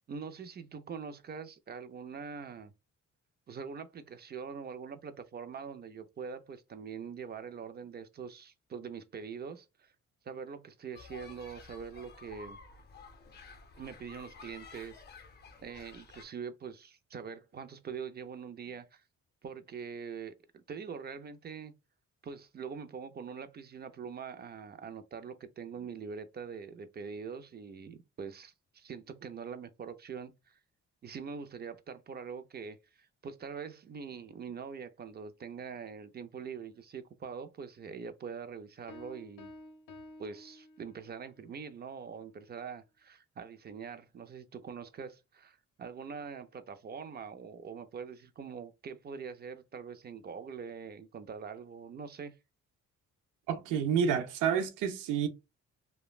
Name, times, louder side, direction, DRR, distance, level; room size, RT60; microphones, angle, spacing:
voice 1, 0.1-2.7 3.5-9.9 10.2-12.6 13.8-15.0 15.6-19.0 19.4-21.7 22.2-30.6 31.0-39.5 40.2-52.3, right 6 dB, 35° right, 0.4 m, -43 dB
sound 1, 10.9-16.2, left 4 dB, 35° left, 0.6 m, -52 dB
Piano, 38.9-41.2, left 2 dB, 75° left, 0.6 m, -51 dB
voice 2, 53.5-55.3, right 7 dB, 85° right, 0.5 m, -29 dB
3.0 x 2.1 x 2.3 m
cardioid pair, 90°, 30 cm